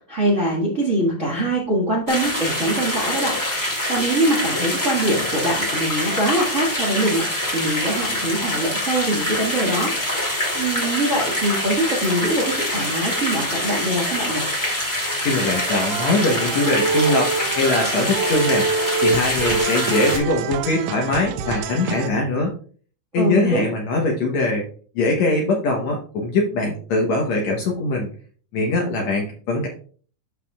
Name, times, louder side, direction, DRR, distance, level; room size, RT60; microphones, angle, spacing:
voice 1, 0.1-9.9 10.5-14.5 23.1-23.7, right 1 dB, 45° right, -3 dB, 0.9 m, -23 dB
sound 1, 2.1-20.2, left 1 dB, 10° left, 1.3 m, -25 dB
voice 2, 15.2-18.7 19.0-22.5 23.1-24.7 25.0-28.1 28.5-29.7, left 2 dB, 65° left, 1 dB, 1.8 m, -22 dB
sound 2, 15.5-22.1, right 5 dB, 80° right, 1.8 m, -26 dB
12.5 x 4.9 x 2.3 m, 0.43 s
omnidirectional pair, 4.2 m